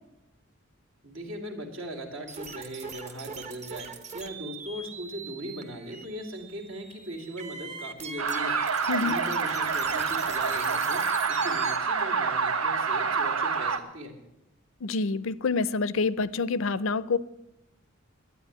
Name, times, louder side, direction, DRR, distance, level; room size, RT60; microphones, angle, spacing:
voice 1, 1.0-8.6 9.0-14.1, equal, 65° right, 2.5 m, -39 dB
sound 1, 2.3-11.8, right 5 dB, 35° right, 1.1 m, -41 dB
sound 2, 8.2-13.8, right 5 dB, 85° right, 1.0 m, -27 dB
voice 2, 14.8-17.2, left 4 dB, 65° left, 0.5 m, -27 dB
11.5 x 9.3 x 9.7 m
head